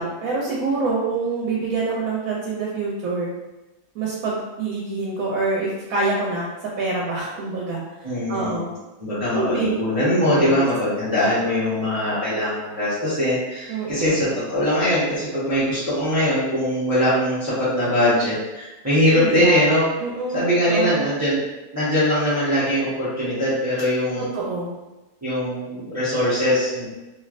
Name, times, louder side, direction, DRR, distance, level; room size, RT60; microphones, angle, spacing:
voice 1, 0.0-3.3 3.9-6.5 6.8-8.7 9.3-9.8 10.3-10.6 13.7-14.3 19.1-19.6 20.0-21.0 24.2-24.7, right 3 dB, 80° right, -4 dB, 1.1 m, -26 dB
voice 2, 8.0-8.6 9.0-19.9 20.3-21.4 21.7-24.3 25.2-26.9, equal, 15° right, -11 dB, 0.9 m, -21 dB
3.2 x 2.7 x 2.5 m, 1.1 s
omnidirectional pair, 1.4 m